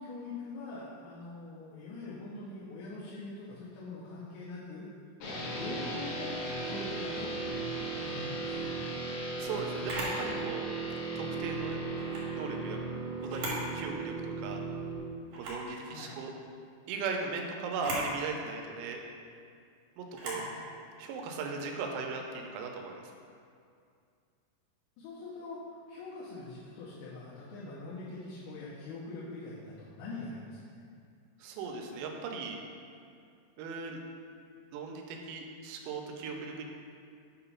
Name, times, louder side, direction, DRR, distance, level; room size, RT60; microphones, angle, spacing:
voice 1, 0.0-4.9 5.3-8.7 15.9-16.2 20.3-20.5 25.0-30.6, left 3 dB, 85° left, -9 dB, 3.5 m, -43 dB
sound 1, 5.2-15.0, right 3 dB, 65° left, 2.7 m, -36 dB
voice 2, 9.4-10.7 11.2-11.8 12.3-12.8 13.2-14.6 15.4-16.3 16.9-19.0 20.0-20.4 21.0-22.9 31.4-32.6 33.6-34.0 34.7-36.6, right 4 dB, 90° right, 2 dB, 3.4 m, -38 dB
Camera, 9.9-10.2 11.9-12.3 13.2-13.7 14.1-14.2 15.3-15.7 17.7-18.1 20.1-20.5, right 2 dB, 70° right, 2.2 m, -37 dB
8.3 x 3.0 x 5.6 m, 2.3 s
omnidirectional pair, 6.0 m